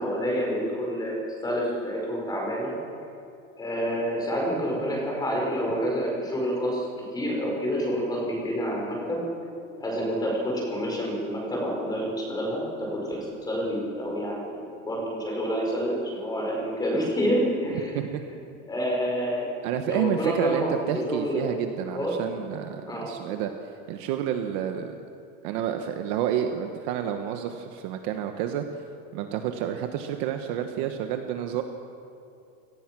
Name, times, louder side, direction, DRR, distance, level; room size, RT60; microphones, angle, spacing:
voice 1, 0.0-2.7 3.6-9.2 9.8-17.9 18.7-19.4 19.9-21.4 21.9-22.1 22.9-23.1, equal, 10° left, -2 dB, 4.9 m, -28 dB
voice 2, 17.7-18.2 19.6-23.5 23.9-24.9 25.4-28.6 29.1-31.6, right 10 dB, 40° right, 6 dB, 1.1 m, -29 dB
29.0 x 18.5 x 6.1 m, 2.5 s
supercardioid pair, 180°, 39 cm